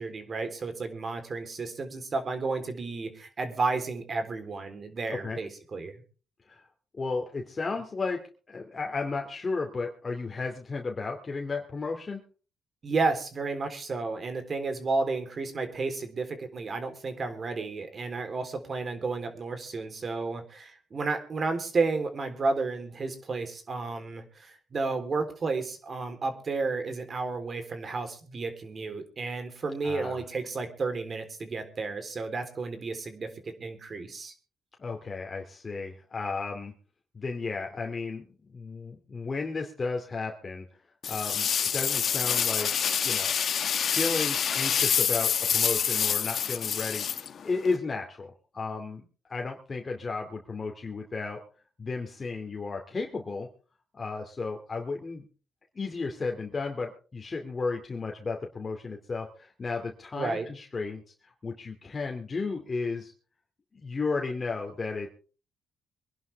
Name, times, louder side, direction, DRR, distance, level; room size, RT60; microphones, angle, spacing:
voice 1, 0.0-6.0 12.8-34.3 60.1-60.5, right 3 dB, 45° right, 7 dB, 3.7 m, -32 dB
voice 2, 7.0-8.2 8.5-12.2 29.8-30.2 34.8-36.7 37.1-40.7 41.1-42.7 43.0-43.3 43.9-51.4 51.8-53.5 53.9-55.3 55.7-63.1 63.7-65.1, left 4 dB, 35° left, 2 dB, 2.5 m, -33 dB
sound 1, 41.0-47.8, left 8 dB, 60° left, 1.4 m, -27 dB
24.0 x 11.0 x 3.5 m, 0.38 s
cardioid pair, 75°, 0 cm